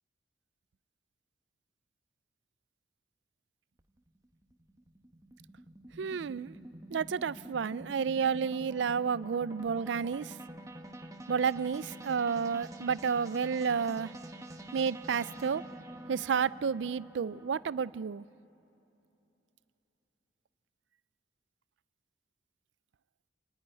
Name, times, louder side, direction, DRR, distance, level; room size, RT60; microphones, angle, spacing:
sound 1, 3.8-18.0, right 1 dB, 20° right, 1.0 m, -47 dB
voice 1, 6.0-6.5 6.9-10.3 11.3-14.1 14.7-15.6 16.1-18.2, right 6 dB, 75° right, 19 dB, 0.4 m, -31 dB
28.5 x 9.5 x 10.0 m, 2.9 s
head